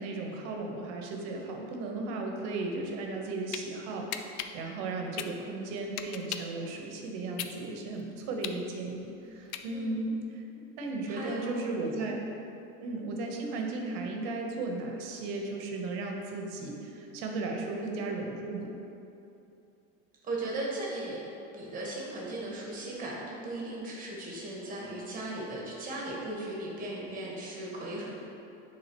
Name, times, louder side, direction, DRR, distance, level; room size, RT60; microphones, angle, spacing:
voice 1, 0.0-12.2 12.8-18.7, right 2 dB, 55° right, 1 dB, 1.0 m, -35 dB
sound 1, 3.1-3.6 4.1-6.6 7.0-10.0, left 10 dB, 60° left, 0.5 m, -38 dB
voice 2, 11.1-11.6 11.9-12.1 20.2-21.3 21.5-28.2, right 2 dB, 25° right, -4 dB, 1.4 m, -37 dB
9.9 x 3.7 x 3.0 m, 2.8 s
supercardioid pair, 145°, 36 cm